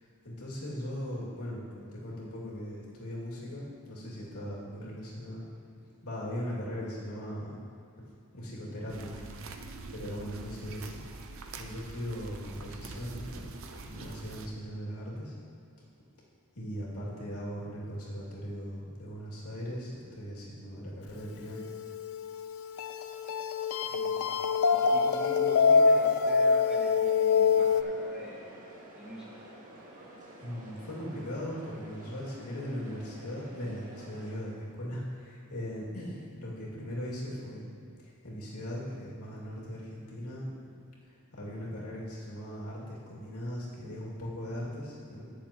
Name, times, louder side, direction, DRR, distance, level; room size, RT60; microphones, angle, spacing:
voice 1, 0.2-5.4 6.0-7.6 8.3-9.6 9.9-11.0 11.6-13.6 13.9-15.4 16.5-21.7 30.4-37.6 38.0-40.5 41.3-45.2, equal, 85° left, -6 dB, 2.5 m, -39 dB
sound 1, 8.9-14.5, right 3 dB, 60° right, 0.6 m, -44 dB
sound 2, 21.6-27.8, left 5 dB, 70° left, 0.5 m, -25 dB
voice 2, 23.9-24.3 24.7-28.5 28.9-29.3, equal, 5° right, -5 dB, 1.5 m, -43 dB
sound 3, 27.5-34.4, right 1 dB, 35° right, 1.9 m, -50 dB
19.0 x 6.8 x 3.0 m, 2.3 s
head